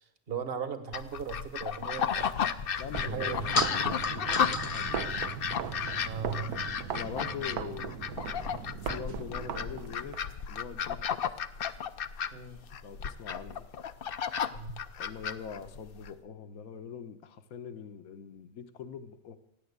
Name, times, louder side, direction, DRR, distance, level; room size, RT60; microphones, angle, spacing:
voice 1, 0.3-2.3 3.0-3.7 4.9-5.0 6.0-6.6 12.3-12.6 14.5-14.8, right 6 dB, 40° right, 10 dB, 1.4 m, -37 dB
sound 1, 0.9-16.1, left 7 dB, 50° left, 0.7 m, -33 dB
sound 2, 2.0-7.5, left 2 dB, 25° left, 1.0 m, -38 dB
voice 2, 2.8-5.1 6.9-8.0 8.8-11.3 12.8-13.7 15.0-19.4, left 7 dB, 70° left, 10 dB, 1.4 m, -43 dB
sound 3, 2.9-10.2, right 8 dB, 80° right, 1.4 m, -38 dB
15.5 x 9.9 x 8.1 m, 0.87 s
omnidirectional pair, 1.6 m